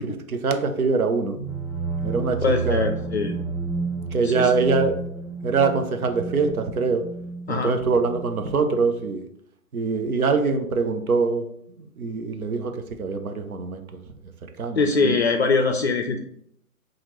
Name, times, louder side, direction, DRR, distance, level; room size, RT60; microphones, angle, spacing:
voice 1, 0.0-1.4 2.0-2.9 4.1-5.0 5.4-7.1 7.5-9.2 9.7-11.5 12.0-13.8 14.6-15.2, right 4 dB, 75° right, 6 dB, 0.7 m, -23 dB
sound 1, 1.4-9.0, right 4 dB, 5° left, 0.7 m, -31 dB
voice 2, 2.4-3.4 4.2-4.5 7.5-7.7 14.8-16.2, left 4 dB, 50° left, 5 dB, 0.4 m, -22 dB
5.6 x 2.5 x 3.0 m, 0.69 s
figure-of-eight pair, 125°, 44 cm